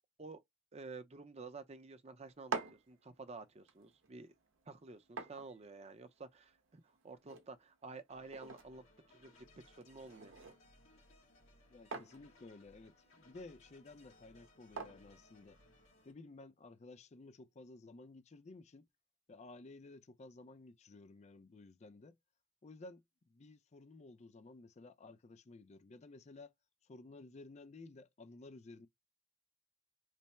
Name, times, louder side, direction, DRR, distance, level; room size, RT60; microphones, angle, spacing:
voice 1, 0.7-4.3 4.7-10.3, right 3 dB, 35° right, 0.6 m, -51 dB
sound 1, 2.2-16.1, right 5 dB, 80° right, 0.7 m, -50 dB
sound 2, 8.1-16.1, left 2 dB, 85° left, 1.7 m, -65 dB
voice 2, 11.7-15.6 16.0-18.8 19.3-22.2 22.6-26.5 26.8-28.9, left 2 dB, 35° left, 0.4 m, -55 dB
3.3 x 2.1 x 4.2 m
head